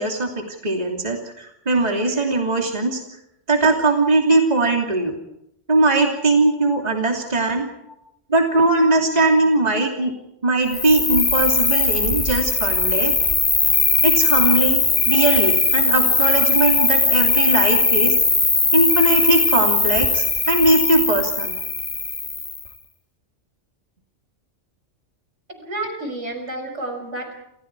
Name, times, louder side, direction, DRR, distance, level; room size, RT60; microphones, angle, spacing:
voice 1, 0.0-3.0 3.5-5.1 5.7-7.7 8.3-10.1 10.4-13.1 14.0-18.1 18.7-21.5, right 2 dB, 35° right, 1 dB, 3.1 m, -20 dB
Cricket, 10.7-22.7, left 3 dB, 25° left, 1.6 m, -19 dB
voice 2, 25.6-27.4, right 2 dB, 75° right, 4 dB, 6.2 m, -30 dB
29.0 x 27.5 x 4.8 m, 0.82 s
omnidirectional pair, 1.2 m